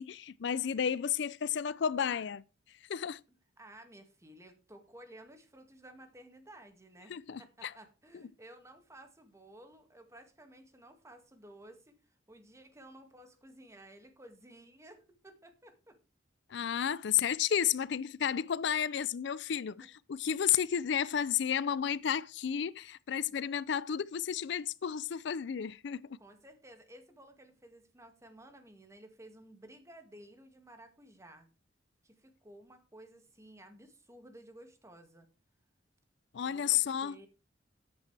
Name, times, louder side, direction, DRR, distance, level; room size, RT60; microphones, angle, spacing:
voice 1, 0.0-2.4 2.9-3.2 7.1-7.7 8.1-8.2 16.5-26.2 36.3-37.2, left 8 dB, 65° left, 0.4 m, -32 dB
voice 2, 3.6-16.0 17.0-17.1 26.2-31.5 32.0-35.3 36.4-37.3, right 1 dB, 15° right, 2.0 m, -55 dB
13.0 x 8.9 x 3.3 m
head